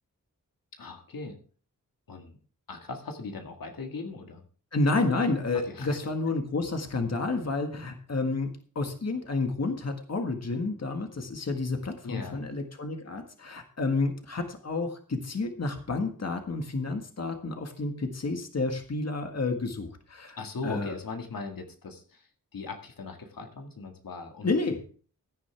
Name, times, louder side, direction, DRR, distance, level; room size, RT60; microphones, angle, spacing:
voice 1, 0.8-1.4 2.1-2.4 2.7-4.4 5.5-6.0 12.0-12.4 20.4-24.5, left 3 dB, 85° left, 3 dB, 2.0 m, -39 dB
voice 2, 4.7-20.4 20.6-21.0 24.4-24.8, left 3 dB, 50° left, 5 dB, 1.7 m, -30 dB
16.0 x 9.9 x 3.5 m, 0.41 s
wide cardioid pair, 90°, 33 cm